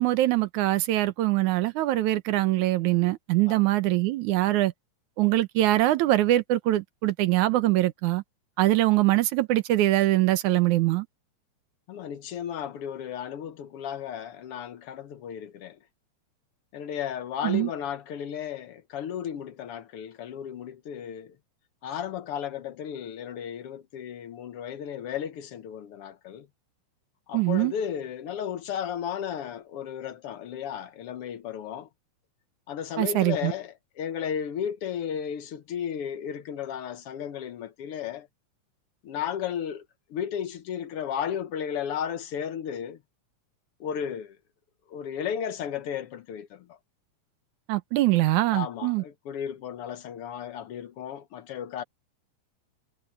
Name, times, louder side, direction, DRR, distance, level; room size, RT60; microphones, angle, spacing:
voice 1, 0.0-4.7 5.2-8.2 8.6-11.1 17.4-17.7 27.3-27.7 33.0-33.5 47.7-49.0, right 16 dB, 80° right, 2.3 m, -23 dB
voice 2, 11.9-15.8 16.7-21.3 21.8-26.5 27.3-31.9 32.7-38.3 39.0-39.8 40.1-43.0 43.8-44.4 44.9-46.8 48.5-51.8, left 9 dB, 60° left, 1.7 m, -34 dB
omnidirectional pair, 3.5 m